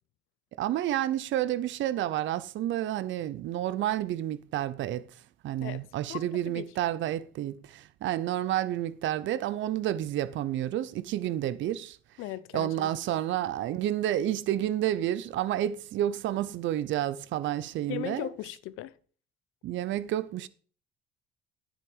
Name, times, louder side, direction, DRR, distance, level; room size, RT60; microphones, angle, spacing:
voice 1, 0.6-5.0 5.4-12.0 12.5-18.3 19.6-20.5, right 12 dB, 65° right, 0.7 m, -30 dB
voice 2, 5.6-6.7 12.2-12.9 17.9-18.9, left 14 dB, 75° left, 0.7 m, -38 dB
10.0 x 7.5 x 5.0 m
cardioid pair, 90°, 21 cm